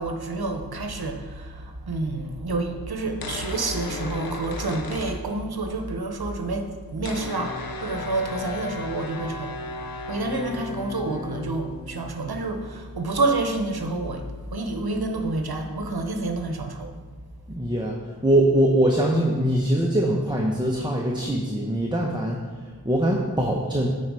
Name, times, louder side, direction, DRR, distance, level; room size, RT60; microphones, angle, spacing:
voice 1, 0.0-9.6 9.8-14.2 14.5-16.9, right 3 dB, 80° right, 5 dB, 0.9 m, -28 dB
sound 1, 3.2-5.8 6.1-6.2 6.3-15.8, left 4 dB, 70° left, 0.7 m, -36 dB
voice 2, 17.5-23.9, right 1 dB, 10° right, -2 dB, 0.8 m, -23 dB
9.2 x 4.4 x 4.8 m, 1.4 s
wide cardioid pair, 50°, 37 cm